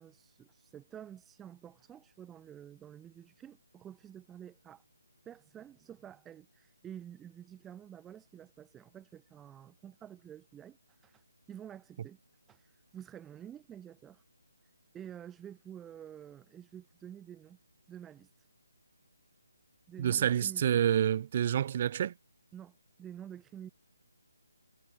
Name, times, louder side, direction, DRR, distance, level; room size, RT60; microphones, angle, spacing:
voice 1, 0.0-4.8 5.2-12.2 12.5-14.2 14.6-17.6 17.9-18.5 19.9-20.8 22.5-23.7, right 10 dB, 10° right, 4.3 m, -49 dB
voice 2, 20.0-22.1, right 9 dB, 35° right, 2.3 m, -28 dB
figure-of-eight pair, 160°, 0 cm